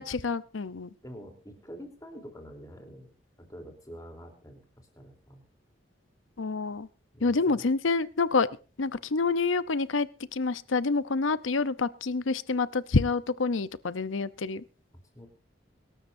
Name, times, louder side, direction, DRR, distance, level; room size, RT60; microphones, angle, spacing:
voice 1, 0.0-0.9 6.4-6.9 7.2-8.5 8.8-14.6, left 4 dB, 90° left, 16 dB, 0.7 m, -27 dB
voice 2, 1.0-4.6 4.9-5.4 7.1-7.7 15.1-15.3, equal, 20° left, 3 dB, 3.5 m, -46 dB
25.5 x 13.0 x 2.7 m, 0.34 s
head